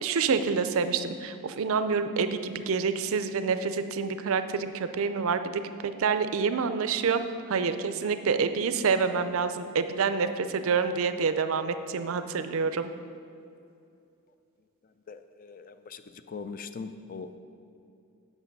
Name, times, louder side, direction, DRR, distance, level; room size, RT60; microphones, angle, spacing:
voice 1, 0.0-7.2 7.5-12.9, right 5 dB, 65° right, 10 dB, 0.5 m, -27 dB
voice 2, 15.1-16.0 16.3-17.4, left 4 dB, 40° left, 10 dB, 0.4 m, -41 dB
8.3 x 6.8 x 5.3 m, 2.6 s
head